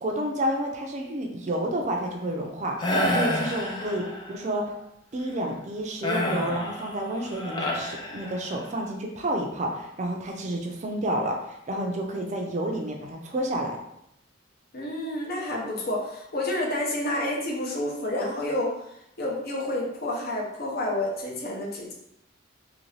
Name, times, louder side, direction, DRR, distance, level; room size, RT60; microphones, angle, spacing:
voice 1, 0.0-4.7 5.1-13.8, right 1 dB, 35° right, 2 dB, 0.4 m, -30 dB
sound 1, 2.8-4.4 6.0-8.7, left 1 dB, 25° left, 0.4 m, -29 dB
voice 2, 14.7-18.7 19.2-21.9, left 1 dB, 50° left, -2 dB, 0.7 m, -29 dB
2.7 x 2.6 x 3.1 m, 0.78 s
head